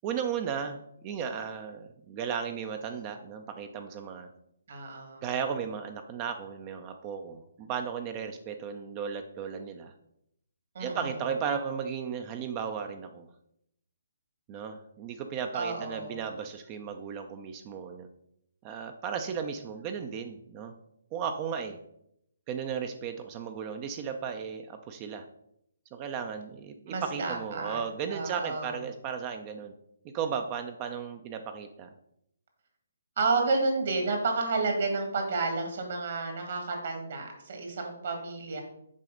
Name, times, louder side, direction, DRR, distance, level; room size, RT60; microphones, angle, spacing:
voice 1, 0.0-0.8 1.0-4.3 5.2-9.9 10.8-13.3 14.5-18.1 18.6-20.7 21.1-21.8 22.5-25.2 25.9-29.7 30.0-31.9, right 7 dB, 30° right, 6 dB, 0.5 m, -35 dB
voice 2, 4.7-5.2 10.8-11.1 15.5-16.2 26.9-27.8 28.1-28.8 33.2-38.6, right 3 dB, 55° right, 3 dB, 1.9 m, -31 dB
7.5 x 4.9 x 3.8 m, 0.76 s
figure-of-eight pair, 140°, 0 cm